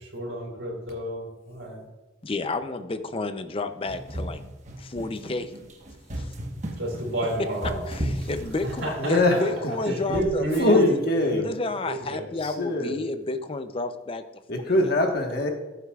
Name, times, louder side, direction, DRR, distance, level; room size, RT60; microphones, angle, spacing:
voice 1, 0.0-1.8 6.8-7.8 8.6-9.5 9.8-11.5 11.9-12.3, right 1 dB, 75° right, -2 dB, 3.4 m, -30 dB
voice 2, 2.2-4.4 4.8-5.5 6.2-6.3 7.9-10.8 11.4-14.2 14.5-14.6, left 2 dB, 30° left, 10 dB, 0.5 m, -31 dB
sound 1, 3.9-9.2 10.1-10.5, equal, 40° right, 1.2 m, -34 dB
voice 3, 9.0-9.3 9.9-10.0 10.6-11.5 12.4-12.9 14.5-15.5, left 2 dB, 55° left, 3 dB, 1.4 m, -22 dB
14.0 x 8.2 x 2.4 m, 1.2 s
head